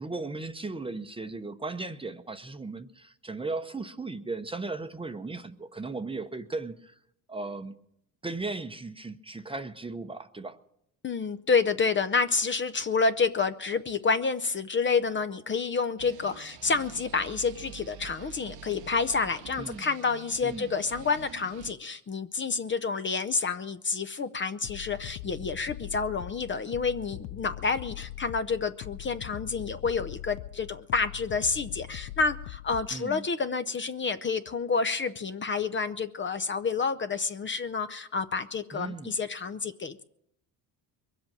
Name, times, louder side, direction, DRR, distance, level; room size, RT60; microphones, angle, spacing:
voice 1, 0.0-6.9 7.3-7.7 8.2-10.6 19.6-19.9 20.4-20.7 32.9-33.2 38.7-39.2, right 3 dB, 15° right, 0.8 m, -36 dB
voice 2, 11.0-40.0, left 4 dB, 30° left, 0.6 m, -29 dB
sound 1, 16.0-21.7, right 9 dB, 75° right, 1.0 m, -47 dB
sound 2, 24.6-33.0, left 15 dB, 80° left, 0.5 m, -42 dB
22.5 x 7.9 x 7.3 m
cardioid pair, 100°, 39 cm